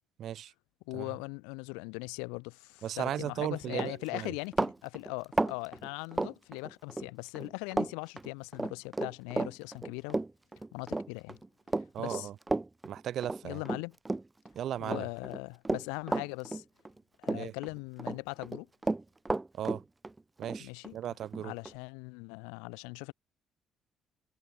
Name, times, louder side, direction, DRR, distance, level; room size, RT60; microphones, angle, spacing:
voice 1, 0.2-0.5 0.9-1.1 2.8-4.3 11.9-12.3 12.8-13.6 14.5-15.1 17.3-17.5 19.5-19.8 20.4-21.5, right 11 dB, 65° right, 2.8 m, -36 dB
voice 2, 0.9-10.2 10.7-11.4 12.0-12.3 13.4-14.0 14.8-16.6 17.2-18.7 20.6-21.0 21.4-23.1, left 34 dB, 85° left, 6.4 m, -40 dB
Run, 3.2-3.4 3.7-7.1 7.4-7.9 8.2-14.5 14.8-17.0 17.2-18.2 18.4-21.8, right 2 dB, 20° right, 1.0 m, -33 dB
hypercardioid pair, 60°, 0 cm